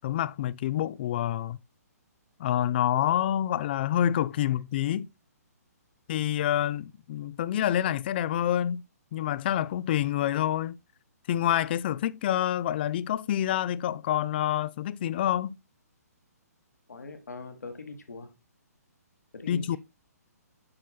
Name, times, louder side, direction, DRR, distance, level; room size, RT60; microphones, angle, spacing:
voice 1, 0.0-1.6 2.4-5.1 6.1-8.8 9.1-10.8 11.3-15.6 19.5-19.8, left 11 dB, 35° left, 0.4 m, -27 dB
voice 2, 16.9-18.3 19.3-19.8, left 3 dB, 70° left, 1.8 m, -41 dB
8.5 x 6.0 x 2.3 m
figure-of-eight pair, 130°, 9 cm